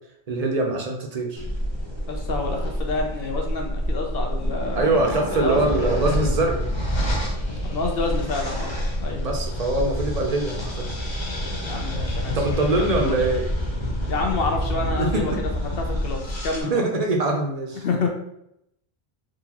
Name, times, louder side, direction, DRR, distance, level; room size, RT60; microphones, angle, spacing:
voice 1, 0.3-1.4 4.7-6.7 9.2-10.8 12.3-13.5 14.8-15.4 16.7-17.8, right 2 dB, 45° right, 1 dB, 0.6 m, -23 dB
sound 1, 1.4-16.6, equal, 30° left, 0.6 m, -27 dB
voice 2, 2.1-5.9 7.7-8.7 9.0-9.2 11.6-12.4 12.8-13.3 14.1-15.3 15.8-16.8 17.7-18.1, left 3 dB, 65° left, 2 dB, 0.9 m, -28 dB
3.9 x 2.5 x 2.9 m, 0.77 s
omnidirectional pair, 1.1 m